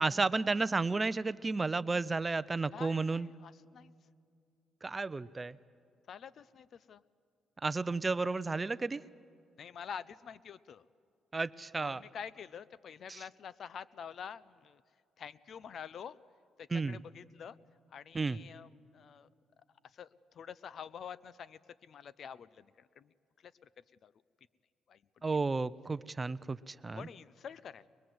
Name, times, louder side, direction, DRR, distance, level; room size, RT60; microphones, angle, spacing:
voice 1, 0.0-3.3 4.8-5.5 7.6-9.0 11.3-12.0 13.1-13.2 16.7-17.0 18.1-18.4 25.2-27.0, right 3 dB, 25° right, 16 dB, 0.5 m, -32 dB
voice 2, 2.7-3.9 6.1-7.0 9.6-10.8 11.8-14.8 15.2-16.2 16.6-17.6 17.9-19.3 19.9-23.1 23.4-23.5 24.0-24.1 24.9-25.2 26.9-27.9, left 7 dB, 60° left, 18 dB, 0.6 m, -47 dB
22.5 x 22.5 x 7.8 m, 2.4 s
cardioid pair, 90°, 0 cm